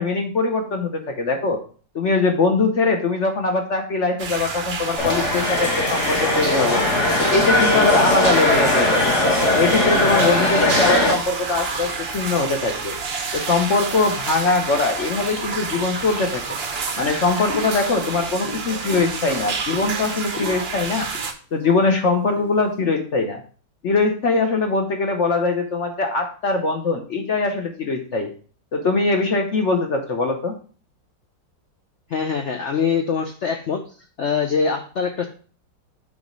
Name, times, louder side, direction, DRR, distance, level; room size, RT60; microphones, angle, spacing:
voice 1, 0.0-1.6 1.9-6.8 7.2-9.1 9.5-13.0 13.3-16.6 17.0-21.1 21.5-23.4 23.8-28.3 28.7-30.5, left 3 dB, 55° left, 4 dB, 0.8 m, -22 dB
sound 1, 4.2-21.3, right 5 dB, 65° right, 0.6 m, -29 dB
sound 2, 5.0-11.1, left 2 dB, 40° left, 1.8 m, -19 dB
sound 3, 11.3-12.1 12.8-13.2 13.7-21.2 21.5-21.9 22.2-22.5, equal, 10° left, 0.6 m, -35 dB
voice 2, 32.1-33.8 34.2-35.3, left 6 dB, 90° left, 4 dB, 0.6 m, -23 dB
6.0 x 3.7 x 5.0 m, 0.40 s
omnidirectional pair, 2.0 m